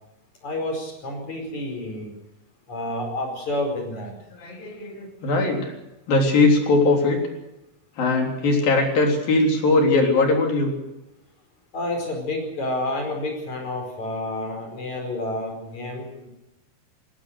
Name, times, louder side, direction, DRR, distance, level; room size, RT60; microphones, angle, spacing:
voice 1, 0.4-2.1 2.7-4.1 11.7-16.3, left 1 dB, 55° left, 3 dB, 6.3 m, -29 dB
voice 2, 4.3-5.7 6.1-7.2 8.0-10.7, left 3 dB, 85° left, 2 dB, 5.4 m, -20 dB
20.5 x 19.5 x 6.7 m, 0.92 s
omnidirectional pair, 3.9 m